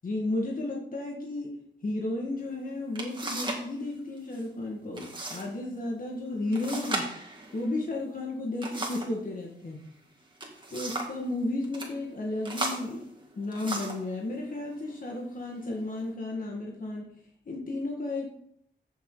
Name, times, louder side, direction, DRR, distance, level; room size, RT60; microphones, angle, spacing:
voice 1, 0.0-1.5 1.8-7.1 7.5-9.8 10.7-13.0 13.4-17.1 17.5-18.3, left 2 dB, 45° left, -1 dB, 1.8 m, -33 dB
sound 1, 2.4-2.5 2.9-3.7 4.0-4.4 4.9-5.5 5.8-5.9 6.5-9.2 10.2-11.2 11.6-11.9 12.4-14.1 14.8-15.0 15.6-16.1, right 2 dB, 25° right, 2.3 m, -36 dB
14.5 x 7.2 x 4.0 m, 0.70 s
wide cardioid pair, 140°, 20 cm